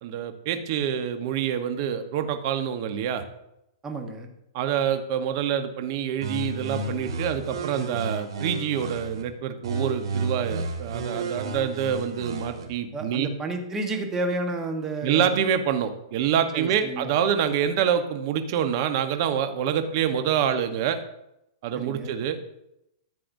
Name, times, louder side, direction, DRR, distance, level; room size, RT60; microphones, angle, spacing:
voice 1, 0.0-3.2 4.5-13.3 15.0-21.0 21.6-22.4, right 9 dB, 45° right, 8 dB, 1.0 m, -26 dB
voice 2, 3.8-4.3 12.9-15.4 16.5-17.1 21.7-22.1, right 2 dB, 15° right, 4 dB, 1.2 m, -31 dB
sound 1, 6.2-9.2 9.6-12.6, right 3 dB, 75° right, 2.6 m, -32 dB
14.0 x 7.6 x 2.7 m, 0.84 s
hypercardioid pair, 150°, 3 cm